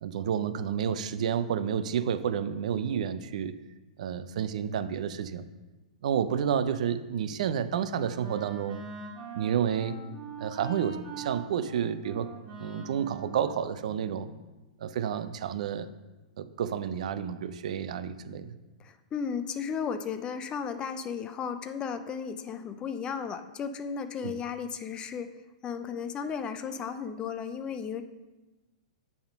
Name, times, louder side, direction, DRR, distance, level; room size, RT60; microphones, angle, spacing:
voice 1, 0.0-3.6 4.0-5.5 6.0-8.8 9.3-10.0 10.4-12.3 12.6-14.3 14.8-15.9 16.4-18.6 24.2-24.3, right 8 dB, 65° right, 12 dB, 0.4 m, -30 dB
Wind instrument woodwind instrument, 7.2-14.4, right 5 dB, 30° right, 2.2 m, -44 dB
voice 2, 18.8-25.3 25.6-28.0, left 6 dB, 20° left, 10 dB, 0.4 m, -34 dB
7.0 x 3.6 x 5.2 m, 1.1 s
hypercardioid pair, 135°, 4 cm